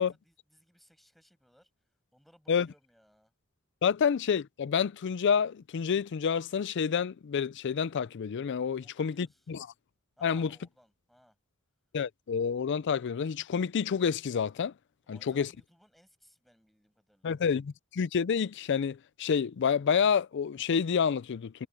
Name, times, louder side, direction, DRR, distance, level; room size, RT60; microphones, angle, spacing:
voice 1, 0.2-1.7 2.1-3.3 8.7-9.4 10.2-11.4 15.0-17.4, equal, ahead, 7.0 m, -61 dB
voice 2, 3.8-9.7 10.2-10.5 11.9-14.7 15.1-15.5 17.2-21.7, left 6 dB, 55° left, 0.4 m, -28 dB
head